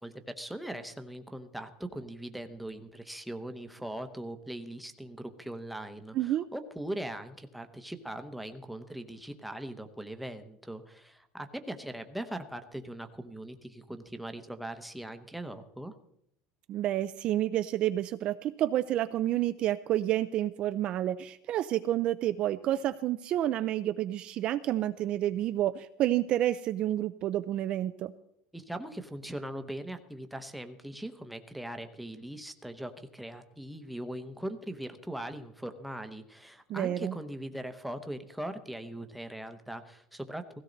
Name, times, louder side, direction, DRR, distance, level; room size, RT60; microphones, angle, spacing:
voice 1, 0.0-16.0 28.5-40.4, right 1 dB, ahead, 6 dB, 0.9 m, -40 dB
voice 2, 6.1-6.5 16.7-28.1 36.7-37.1, right 13 dB, 35° right, 11 dB, 0.4 m, -29 dB
16.5 x 16.5 x 4.0 m, 0.75 s
cardioid pair, 175°, 3 cm